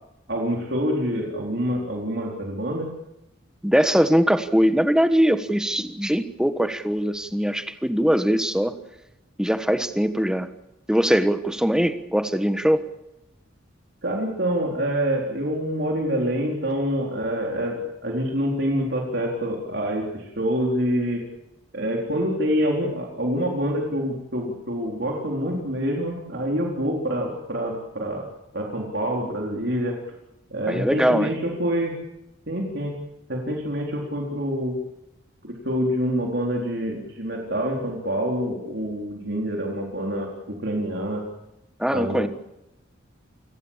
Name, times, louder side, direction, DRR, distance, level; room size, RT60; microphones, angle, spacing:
voice 1, 0.3-2.9 14.0-21.2 21.7-28.2 28.5-30.0 30.5-31.9 32.5-32.9 33.3-34.8 35.4-41.2 41.9-42.3, equal, 60° right, 0 dB, 4.0 m, -26 dB
voice 2, 3.6-8.8 9.4-10.5 10.9-12.8 30.7-31.3 41.8-42.3, equal, 5° right, 9 dB, 1.4 m, -21 dB
29.0 x 17.5 x 7.4 m, 0.90 s
head